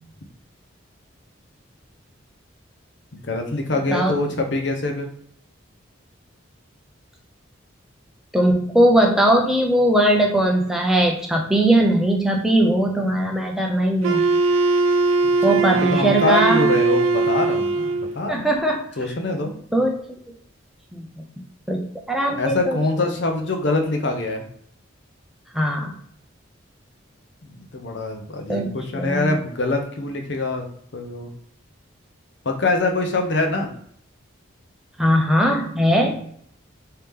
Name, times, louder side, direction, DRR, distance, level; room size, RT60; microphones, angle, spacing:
voice 1, 3.1-5.1 15.4-18.5 19.0-19.5 22.3-24.5 27.4-30.7 30.9-31.3 32.4-33.7, left 2 dB, 60° left, 3 dB, 0.6 m, -24 dB
voice 2, 8.3-14.3 15.4-16.7 18.3-18.8 19.7-20.2 20.9-21.3 21.7-22.8 25.5-25.9 28.5-29.3 35.0-36.2, right 1 dB, ahead, 0 dB, 0.4 m, -20 dB
Wind instrument woodwind instrument, 14.0-18.2, right 4 dB, 80° right, 0.3 m, -20 dB
3.3 x 2.8 x 3.5 m, 0.65 s
head